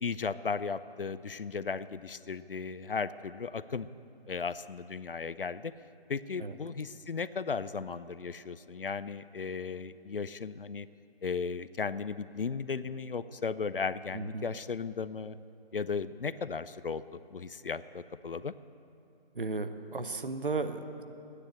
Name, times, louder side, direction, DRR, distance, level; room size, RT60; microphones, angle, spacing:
voice 1, 0.0-3.9 4.3-5.7 6.1-10.9 11.2-15.4 15.7-18.5, left 5 dB, 60° left, 15 dB, 0.4 m, -36 dB
voice 2, 14.1-14.5 19.3-21.0, right 3 dB, 55° right, 9 dB, 0.8 m, -35 dB
12.0 x 9.7 x 7.7 m, 2.6 s
figure-of-eight pair, 175°, 31 cm